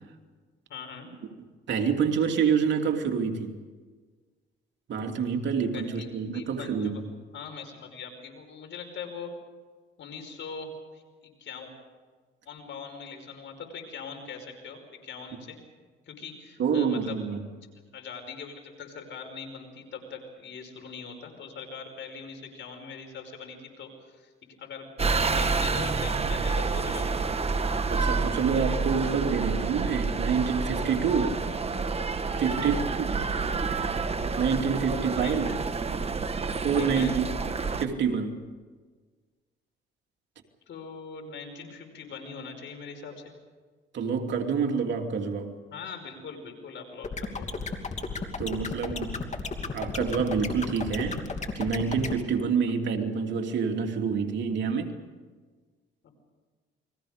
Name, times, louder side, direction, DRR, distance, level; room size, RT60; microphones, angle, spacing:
voice 1, 0.7-1.1 5.7-6.1 6.3-7.0 7.3-9.3 10.0-11.7 12.5-15.6 16.1-17.2 17.8-24.3 24.6-27.2 31.2-31.5 32.4-32.8 35.2-35.6 36.8-37.1 40.7-43.3 45.7-47.5 56.0-56.1, left 5 dB, 70° left, 4 dB, 5.3 m, -41 dB
voice 2, 1.7-3.6 4.9-7.0 16.6-17.4 27.9-31.4 32.4-33.2 34.4-35.5 36.6-37.2 37.8-38.4 43.9-45.5 48.4-49.3 49.7-51.2 51.5-55.0, right 6 dB, 65° right, 2 dB, 2.9 m, -27 dB
sound 1, 25.0-37.9, right 4 dB, 30° right, 1.4 m, -28 dB
sound 2, 47.0-52.1, left 4 dB, 35° left, 2.7 m, -33 dB
29.5 x 22.0 x 5.2 m, 1.4 s
cardioid pair, 90°, 20 cm